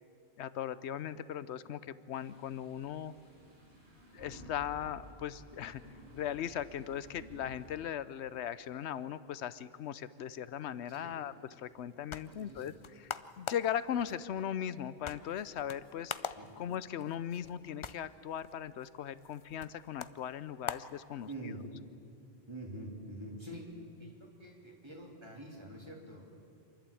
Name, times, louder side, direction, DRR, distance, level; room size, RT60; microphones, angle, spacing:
voice 1, 0.4-3.1 4.1-5.8 6.1-16.1 16.6-21.3, left 9 dB, 90° left, 16 dB, 1.0 m, -38 dB
sound 1, 2.1-7.8, right 1 dB, 50° right, 5.5 m, -54 dB
sound 2, 11.7-21.7, left 6 dB, 45° left, 0.4 m, -46 dB
voice 2, 21.3-21.6 22.5-26.2, right 1 dB, 25° right, -2 dB, 3.3 m, -46 dB
27.5 x 11.5 x 8.5 m, 2.5 s
omnidirectional pair, 1.1 m